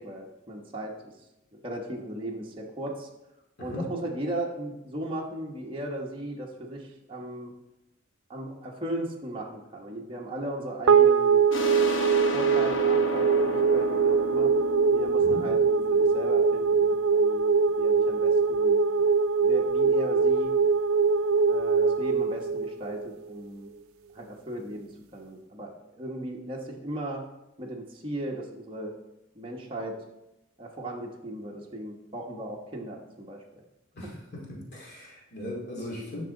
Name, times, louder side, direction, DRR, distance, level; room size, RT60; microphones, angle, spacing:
voice 1, 0.0-3.1 3.6-7.5 8.3-11.4 12.3-14.5 14.9-19.0 19.4-20.5 21.4-23.7 24.1-27.2 27.6-28.9 29.3-30.0 30.6-33.4 34.0-34.1, right 1 dB, 25° right, -2 dB, 1.0 m, -37 dB
sound 1, 10.9-23.4, right 5 dB, 90° right, 0.4 m, -23 dB
sound 2, 11.5-16.8, left 1 dB, 70° left, 1.1 m, -33 dB
voice 2, 34.5-36.3, left 1 dB, 55° left, -3 dB, 2.4 m, -37 dB
10.0 x 6.0 x 3.8 m, 0.92 s
head